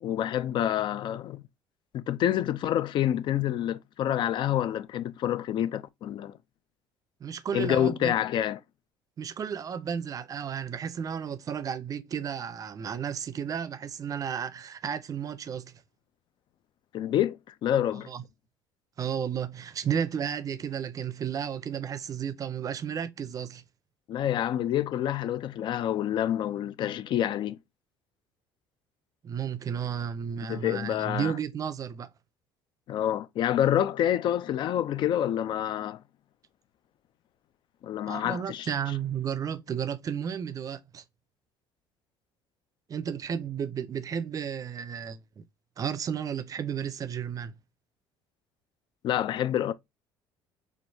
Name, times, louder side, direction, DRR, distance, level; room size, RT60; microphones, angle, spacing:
voice 1, 0.0-1.4 1.9-6.4 7.5-8.6 16.9-18.1 24.1-27.6 30.5-31.3 32.9-36.0 37.8-38.7 49.0-49.7, left 11 dB, 55° left, 0.4 m, -27 dB
voice 2, 7.2-8.1 9.2-15.7 18.1-18.2 19.0-23.6 29.2-32.1 38.1-41.0 42.9-45.4 45.8-47.5, right 8 dB, 35° right, 0.5 m, -33 dB
4.4 x 2.4 x 2.6 m
supercardioid pair, 100°, 10 cm